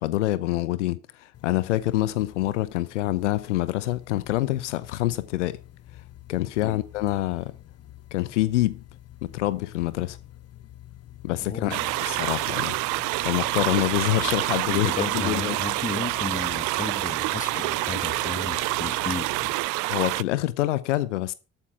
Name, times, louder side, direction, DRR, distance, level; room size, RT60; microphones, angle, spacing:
voice 1, 0.0-5.6 6.3-7.5 8.1-8.8 9.2-10.2 11.2-12.8 13.2-15.5 19.9-21.3, left 16 dB, 85° left, 0.6 m, -26 dB
sound 1, 1.3-19.5, left 13 dB, 45° left, 0.8 m, -46 dB
voice 2, 11.5-11.9 14.6-19.3, left 4 dB, 20° left, 1.5 m, -34 dB
sound 2, 11.7-20.2, right 22 dB, 60° right, 0.5 m, -27 dB
13.0 x 8.8 x 4.7 m
figure-of-eight pair, 45°, 35 cm